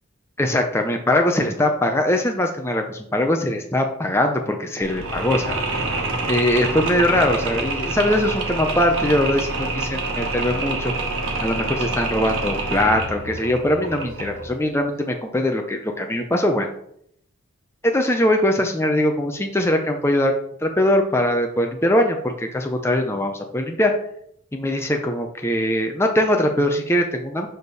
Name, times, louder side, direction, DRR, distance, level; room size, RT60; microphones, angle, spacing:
voice 1, 0.4-5.6 6.2-10.9 11.4-16.7 17.8-20.3 20.6-23.9 24.5-27.5, left 1 dB, 15° left, 3 dB, 0.6 m, -21 dB
Mechanisms, 4.8-14.6, right 2 dB, 90° right, 1.4 m, -27 dB
6.5 x 5.2 x 4.1 m, 0.70 s
head